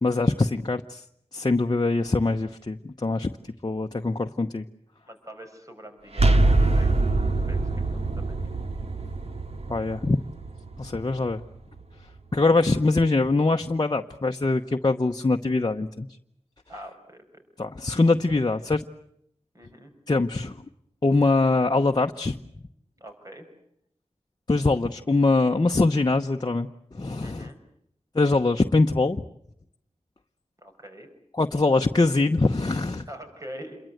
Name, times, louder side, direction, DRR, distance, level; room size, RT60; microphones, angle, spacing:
voice 1, 0.0-1.0 1.3-3.3 3.6-4.6 9.7-10.2 10.8-11.4 12.3-16.1 17.6-18.8 20.1-20.6 21.0-22.4 24.5-27.5 28.1-29.2 31.3-33.1, left 3 dB, 40° left, 3 dB, 1.0 m, -23 dB
voice 2, 5.0-7.1 7.5-8.3 16.7-17.4 19.5-19.9 23.0-23.5 27.2-27.6 30.6-31.1 33.1-33.8, equal, 30° right, 5 dB, 5.7 m, -44 dB
sound 1, 6.1-11.8, right 2 dB, 65° right, 2.4 m, -24 dB
28.0 x 23.0 x 7.9 m, 0.73 s
wide cardioid pair, 80°, 11 cm